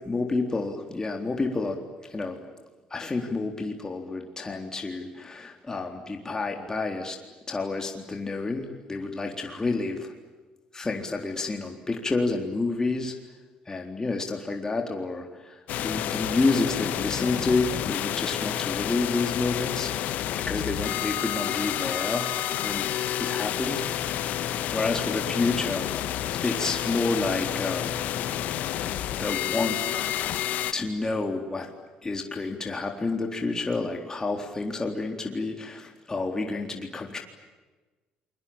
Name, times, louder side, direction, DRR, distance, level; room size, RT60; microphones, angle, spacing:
voice 1, 0.1-2.4 2.9-7.2 7.5-10.1 10.7-13.1 13.7-20.2 20.4-22.3 22.6-22.9 23.2-26.0 26.4-28.0 29.2-29.8 30.7-31.7 32.0-37.2, left 3 dB, 20° left, 2 dB, 3.9 m, -29 dB
sound 1, 15.7-30.7, left 11 dB, 70° left, 1.4 m, -29 dB
28.0 x 23.0 x 8.9 m, 1.2 s
supercardioid pair, 85°, 3 cm